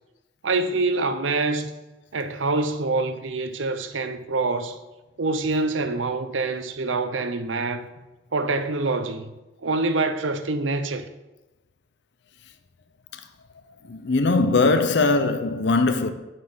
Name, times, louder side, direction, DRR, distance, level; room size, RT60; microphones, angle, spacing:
voice 1, 0.4-1.7 2.1-4.8 5.2-7.9 8.3-9.3 9.6-11.0, right 3 dB, 90° right, 0.8 m, -25 dB
voice 2, 13.9-16.1, left 3 dB, 65° left, 0.7 m, -20 dB
7.8 x 5.7 x 7.8 m
head